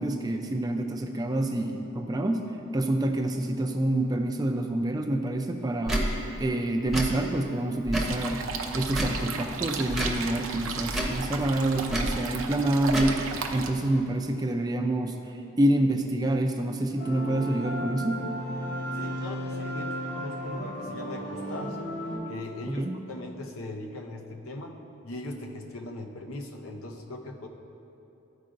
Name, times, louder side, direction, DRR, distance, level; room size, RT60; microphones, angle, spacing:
voice 1, 0.0-2.5 2.7-6.0 6.4-8.4 8.7-18.2 22.7-23.0, right 1 dB, 20° right, 3 dB, 0.4 m, -27 dB
Tick / Tick-tock, 5.8-6.1 6.9-7.1 7.9-8.2 8.9-9.2 9.9-10.2 10.9-11.2 11.9-12.1 12.9-13.1, right 1 dB, ahead, 0.8 m, -28 dB
sound 1, 8.0-13.7, right 4 dB, 75° right, 0.6 m, -35 dB
sound 2, 17.0-22.2, equal, 50° left, 1.3 m, -34 dB
voice 2, 18.9-21.8 22.3-27.5, left 1 dB, 85° left, 3 dB, 0.7 m, -39 dB
13.5 x 4.7 x 2.5 m, 2.9 s
head